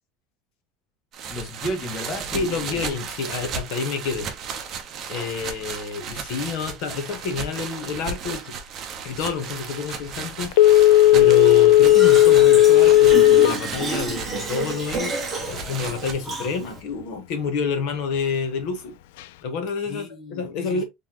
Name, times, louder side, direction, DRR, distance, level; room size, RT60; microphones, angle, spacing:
sound 1, 1.1-16.1, right 6 dB, 30° right, 0.8 m, -35 dB
voice 1, 1.3-2.8 19.9-20.8, equal, 20° left, 1.1 m, -33 dB
voice 2, 2.3-4.3 5.1-8.5 9.0-10.5 10.8-19.0 19.4-20.8, left 5 dB, 55° left, 1.3 m, -29 dB
Telephone, 10.5-13.6 14.0-14.1, left 14 dB, 90° left, 0.3 m, -13 dB
Fill (with liquid), 11.8-16.8, right 3 dB, 10° right, 1.2 m, -31 dB
4.0 x 3.6 x 2.9 m
cardioid pair, 175°, 0 cm